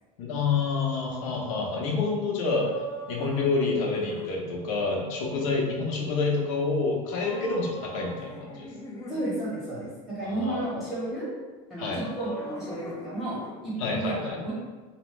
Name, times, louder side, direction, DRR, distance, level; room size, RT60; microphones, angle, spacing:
voice 1, 0.2-2.7 3.1-8.7 10.2-10.6 11.8-12.0 13.8-14.4, left 4 dB, 80° left, -1 dB, 0.7 m, -28 dB
sound 1, 2.5-4.4 7.2-9.4 11.8-13.6, left 1 dB, 20° left, 0.4 m, -41 dB
voice 2, 9.1-11.3 11.7-14.5, right 1 dB, ahead, -10 dB, 0.8 m, -32 dB
2.8 x 2.0 x 3.1 m, 1.3 s
supercardioid pair, 145°, 17 cm